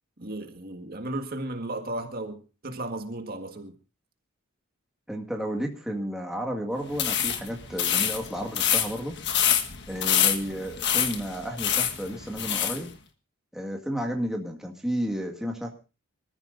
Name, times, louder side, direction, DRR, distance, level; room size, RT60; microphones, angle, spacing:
voice 1, 0.2-3.7, right 1 dB, 45° right, 6 dB, 1.8 m, -35 dB
voice 2, 5.1-9.2 9.9-12.9 13.5-15.7, equal, ahead, 1 dB, 2.0 m, -32 dB
sound 1, 6.9-12.8, left 9 dB, 55° left, 1.5 m, -26 dB
26.0 x 14.5 x 2.6 m, 0.32 s
head